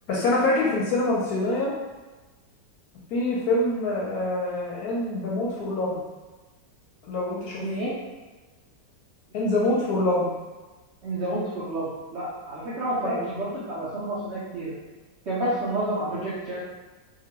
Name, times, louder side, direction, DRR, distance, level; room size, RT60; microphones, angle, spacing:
voice 1, 0.1-1.7 3.1-6.1 7.1-7.6 9.3-10.4 13.0-13.2, left 2 dB, 70° left, -5 dB, 0.9 m, -25 dB
voice 2, 7.6-8.0 11.0-14.7 15.3-16.6, right 1 dB, 80° right, -8 dB, 0.6 m, -29 dB
2.9 x 2.3 x 2.9 m, 1.2 s
omnidirectional pair, 2.0 m